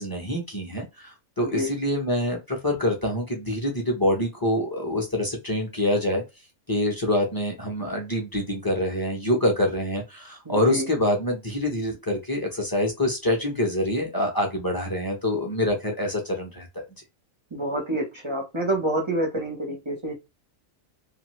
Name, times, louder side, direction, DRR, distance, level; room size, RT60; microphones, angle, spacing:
voice 1, 0.0-6.2 6.7-16.8, left 1 dB, 20° left, 0 dB, 0.6 m, -26 dB
voice 2, 1.4-1.7 10.4-10.9 17.5-20.2, right 1 dB, 30° right, 1 dB, 0.6 m, -28 dB
2.6 x 2.5 x 3.0 m, 0.24 s
omnidirectional pair, 1.4 m